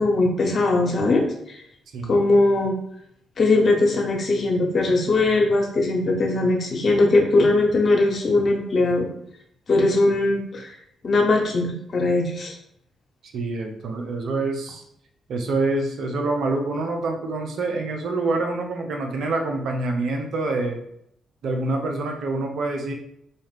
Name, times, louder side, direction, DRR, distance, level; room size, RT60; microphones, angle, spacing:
voice 1, 0.0-1.6 2.1-2.7 3.4-9.1 9.7-10.7 11.0-12.5, left 2 dB, 50° left, 0 dB, 1.1 m, -20 dB
voice 2, 13.3-14.8 15.3-20.8 21.4-22.9, right 2 dB, 70° right, 3 dB, 0.6 m, -26 dB
4.1 x 2.4 x 3.3 m, 0.73 s
supercardioid pair, 50°, 0 cm